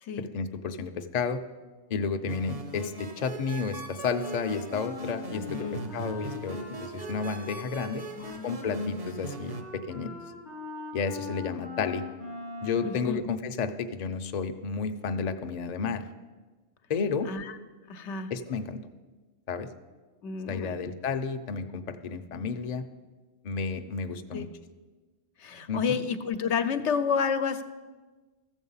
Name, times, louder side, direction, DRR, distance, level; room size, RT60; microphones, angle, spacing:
voice 1, 0.2-1.4 1.9-5.7 5.9-8.0 8.4-10.1 10.9-12.0 12.6-16.0 16.9-17.3 18.3-18.8 19.5-19.7 20.5-22.9 23.4-24.5 25.7-26.0, left 5 dB, 45° left, 7 dB, 0.6 m, -32 dB
sound 1, 2.3-9.6, right 2 dB, 55° right, 1.2 m, -40 dB
Wind instrument woodwind instrument, 4.1-13.1, left 4 dB, 80° right, 2.4 m, -41 dB
voice 2, 5.5-5.9 8.2-8.8 12.8-13.3 17.2-17.6 17.9-18.3 20.2-20.8 24.3-24.5 25.4-27.6, left 6 dB, 80° left, 9 dB, 1.0 m, -30 dB
14.0 x 7.2 x 5.5 m, 1.3 s
omnidirectional pair, 1.2 m